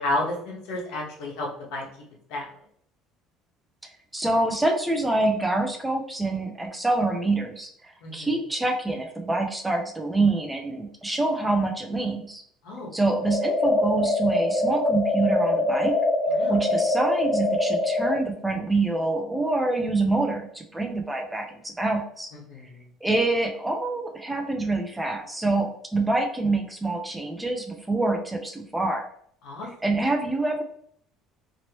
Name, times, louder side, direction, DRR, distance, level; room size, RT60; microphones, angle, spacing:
voice 1, 0.0-1.9 2.3-2.5 8.0-8.3 12.6-12.9 16.3-16.6 22.3-22.8 29.4-29.7, left 1 dB, 90° left, -2 dB, 1.2 m, -31 dB
voice 2, 4.1-12.4 12.9-16.0 16.5-22.3 23.0-29.1 29.8-30.6, right 2 dB, 10° right, 4 dB, 0.4 m, -26 dB
sound 1, 13.1-18.2, left 2 dB, 45° left, 1.0 m, -24 dB
3.0 x 2.9 x 2.9 m, 0.65 s
cardioid pair, 155°, 0 cm